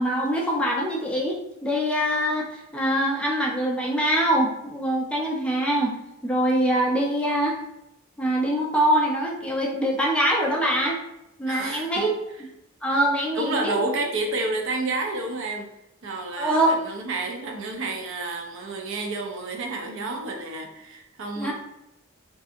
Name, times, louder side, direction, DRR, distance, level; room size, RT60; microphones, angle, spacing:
voice 1, 0.0-6.0 6.2-7.6 8.2-11.0 11.4-12.1 12.8-13.8 16.4-16.8 21.4-21.5, right 1 dB, 5° left, -3 dB, 0.4 m, -24 dB
voice 2, 11.5-12.0 12.9-13.0 13.3-15.7 16.0-21.5, right 2 dB, 65° right, 2 dB, 0.5 m, -30 dB
2.6 x 2.4 x 2.5 m, 0.85 s
head